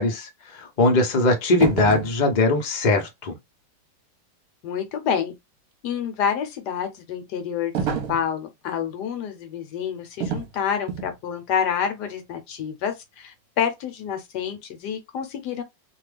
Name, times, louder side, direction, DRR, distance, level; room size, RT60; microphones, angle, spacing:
voice 1, 0.0-3.3, left 2 dB, 50° left, 0.5 m, -21 dB
sound 1, 1.6-2.2 7.7-8.3 10.2-10.5 10.9-11.2, right 7 dB, 60° right, 1.1 m, -27 dB
voice 2, 4.6-5.3 5.8-15.6, left 8 dB, 70° left, 1.2 m, -28 dB
2.9 x 2.3 x 3.2 m
omnidirectional pair, 2.0 m